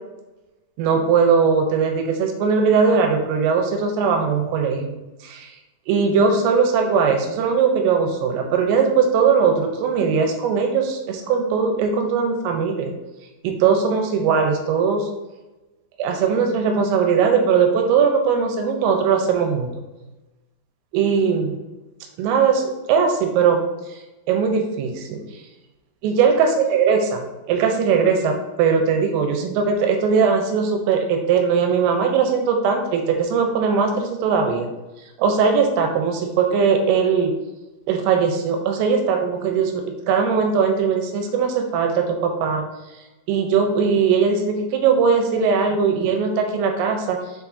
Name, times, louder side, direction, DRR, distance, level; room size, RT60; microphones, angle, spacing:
voice 1, 0.8-5.5 5.9-12.9 13.4-15.1 16.0-19.7 20.9-21.6 22.2-23.6 23.9-24.0 24.3-25.2 26.0-34.7 35.2-37.3 37.9-42.6 43.3-47.2, right 6 dB, 85° right, 4 dB, 3.2 m, -20 dB
7.4 x 4.7 x 2.7 m, 1.0 s
omnidirectional pair, 5.9 m